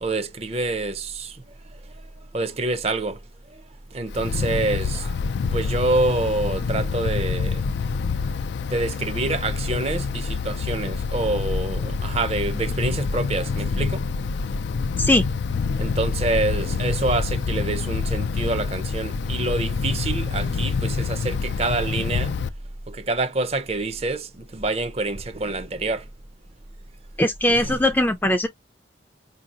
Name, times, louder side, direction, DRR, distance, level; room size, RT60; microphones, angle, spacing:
voice 1, 0.0-1.9 2.3-3.2 3.5-3.6 3.9-5.2 5.5-7.6 8.7-14.0 15.8-22.4 22.9-26.1 27.5-27.8, right 2 dB, 35° right, 0.6 m, -27 dB
Wind, 4.1-22.5, left 5 dB, 75° left, 0.4 m, -26 dB
voice 2, 27.2-28.5, left 1 dB, 10° left, 0.4 m, -20 dB
4.6 x 2.8 x 2.4 m
head